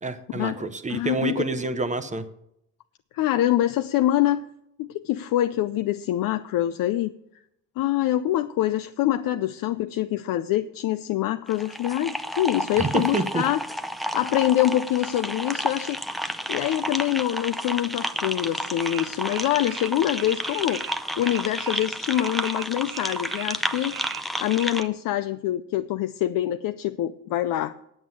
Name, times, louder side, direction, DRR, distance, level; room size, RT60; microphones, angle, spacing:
voice 1, 0.0-2.2 12.8-13.4, right 3 dB, 20° right, 10 dB, 0.8 m, -28 dB
voice 2, 0.9-1.4 3.1-4.4 4.8-7.1 7.8-13.6 14.1-16.0 16.5-20.8 21.2-24.0 24.4-27.7, left 13 dB, 75° left, 9 dB, 0.6 m, -25 dB
sound 1, 11.5-24.8, equal, ahead, 0.5 m, -31 dB
sound 2, 18.8-22.6 22.9-24.9, right 13 dB, 75° right, 0.8 m, -40 dB
9.1 x 8.0 x 7.2 m, 0.76 s
cardioid pair, 140°, 34 cm